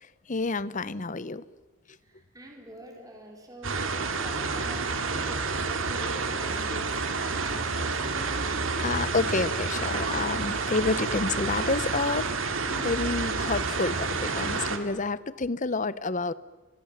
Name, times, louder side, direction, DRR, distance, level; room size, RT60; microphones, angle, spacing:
voice 1, 0.3-1.4 5.1-5.3 8.8-12.3 12.7-16.3, left 3 dB, 35° left, 17 dB, 0.8 m, -29 dB
voice 2, 2.1-7.0 7.3-8.4, equal, 15° right, 1 dB, 3.9 m, -45 dB
sound 1, 3.6-14.8, right 4 dB, 65° right, 2.4 m, -29 dB
29.0 x 24.5 x 7.3 m, 1.2 s
head